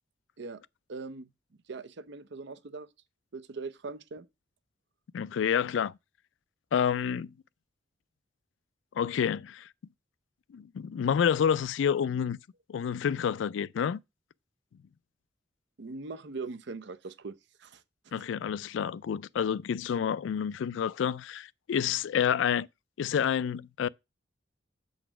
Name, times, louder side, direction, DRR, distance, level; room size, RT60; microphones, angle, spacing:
voice 1, 0.9-1.3 1.7-2.9 3.3-4.3 15.8-17.8 18.1-18.3, right 4 dB, 65° right, 0.6 m, -41 dB
voice 2, 5.1-5.9 6.7-7.3 9.0-9.7 10.5-12.4 12.7-14.0 18.1-22.7 23.0-23.9, left 8 dB, 70° left, 0.3 m, -28 dB
7.5 x 4.0 x 5.9 m
head